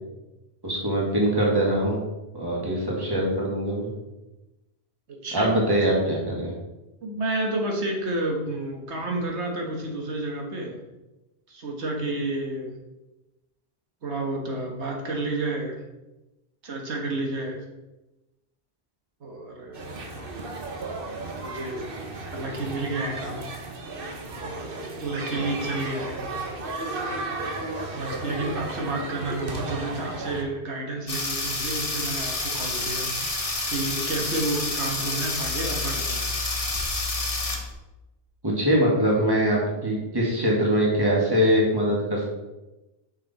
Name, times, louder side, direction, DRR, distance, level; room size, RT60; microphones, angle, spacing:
voice 1, 0.6-2.0 2.3-3.9 5.3-6.5 38.4-42.2, equal, 20° right, -3 dB, 1.8 m, -23 dB
voice 2, 5.1-5.6 7.0-10.8 11.5-12.8 14.0-15.8 16.6-17.7 19.2-19.9 21.4-21.9 22.2-23.5 24.4-26.2 26.9-27.1 28.0-36.2, right 2 dB, 90° right, 1 dB, 1.6 m, -30 dB
sound 1, 19.7-30.4, right 2 dB, 55° right, 1.1 m, -34 dB
sound 2, 31.1-37.7, left 2 dB, 35° left, 1.2 m, -28 dB
6.1 x 5.9 x 4.2 m, 1.0 s
omnidirectional pair, 1.1 m